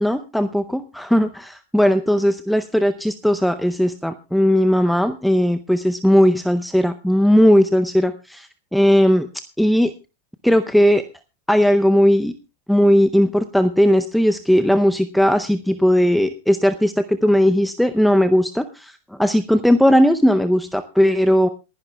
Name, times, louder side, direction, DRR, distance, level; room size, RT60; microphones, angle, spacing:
voice 1, 0.0-9.3 9.6-9.9 10.4-11.0 11.5-12.3 12.7-21.5, equal, ahead, 9 dB, 0.6 m, -17 dB
28.0 x 11.0 x 2.3 m, 0.29 s
supercardioid pair, 145°, 0 cm